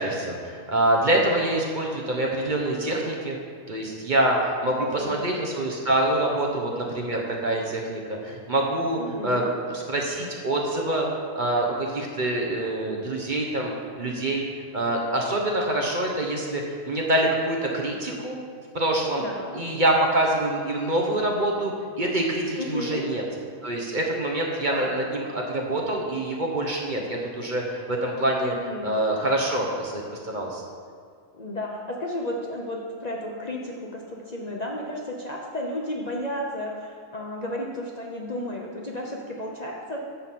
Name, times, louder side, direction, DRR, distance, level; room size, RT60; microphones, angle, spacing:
voice 1, 0.0-3.4 3.7-9.4 9.7-11.1 11.3-14.4 14.7-18.4 18.7-19.2 19.5-23.2 23.6-28.5 28.8-30.6, right 1 dB, 40° right, -1 dB, 1.1 m, -25 dB
voice 2, 4.9-5.2 9.0-9.5 19.2-19.6 22.6-23.0 24.7-24.9 28.5-29.0 31.3-40.0, left 1 dB, 35° left, -2 dB, 0.8 m, -33 dB
11.0 x 3.9 x 7.4 m, 2.1 s
omnidirectional pair, 1.4 m